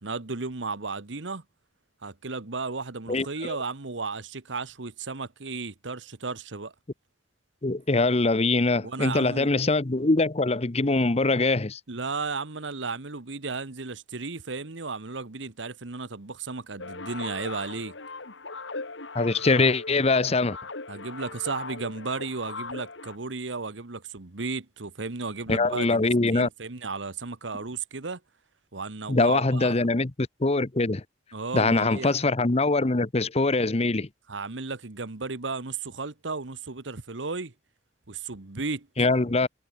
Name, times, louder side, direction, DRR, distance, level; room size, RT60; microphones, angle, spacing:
voice 1, 0.0-1.4 2.0-6.7 8.8-9.5 11.9-17.9 20.9-26.0 26.3-28.2 28.7-29.9 31.3-32.1 34.3-37.5 38.1-38.9, right 4 dB, 80° right, 1.4 m, -34 dB
voice 2, 3.1-3.6 7.6-11.8 19.1-20.6 25.5-26.5 29.1-30.1 30.4-31.0 31.5-34.1 39.0-39.5, left 3 dB, 35° left, 0.9 m, -23 dB
sound 1, 16.8-23.2, left 3 dB, 75° left, 2.6 m, -39 dB
head